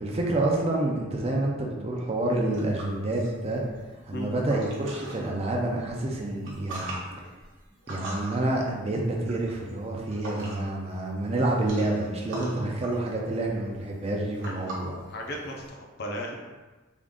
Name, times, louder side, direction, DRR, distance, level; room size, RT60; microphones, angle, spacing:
voice 1, 0.0-3.6 4.1-6.9 7.9-15.0, right 2 dB, 30° right, -1 dB, 0.5 m, -28 dB
sound 1, 2.5-5.3 5.8-10.8 11.1-15.7, right 1 dB, 65° right, 0.9 m, -42 dB
voice 2, 15.1-16.4, equal, 55° left, 0 dB, 0.6 m, -35 dB
3.6 x 2.5 x 3.6 m, 1.2 s
head